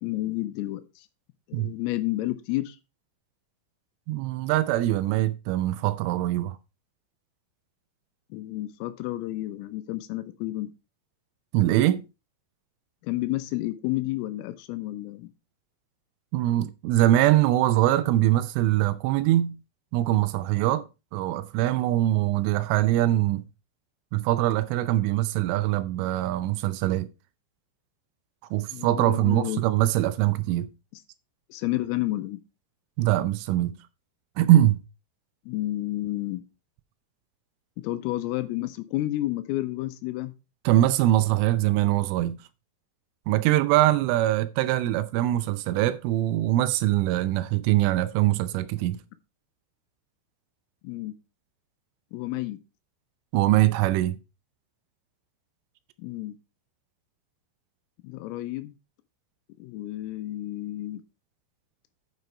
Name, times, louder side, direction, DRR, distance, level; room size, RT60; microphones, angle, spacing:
voice 1, 0.0-1.1 1.5-2.8 8.3-10.7 13.0-15.3 28.7-29.6 31.5-32.4 35.5-36.4 37.8-40.3 50.8-51.2 52.1-52.6 56.0-56.3 58.0-58.8 59.6-61.0, left 16 dB, 90° left, 3.6 m, -31 dB
voice 2, 4.1-6.6 11.5-12.0 16.3-19.6 19.9-20.9 21.1-23.4 24.1-27.1 28.5-30.7 33.0-33.8 34.4-34.8 40.7-42.4 43.3-49.0 53.3-54.2, right 14 dB, 80° right, 3.1 m, -23 dB
9.6 x 6.0 x 4.4 m
omnidirectional pair, 5.9 m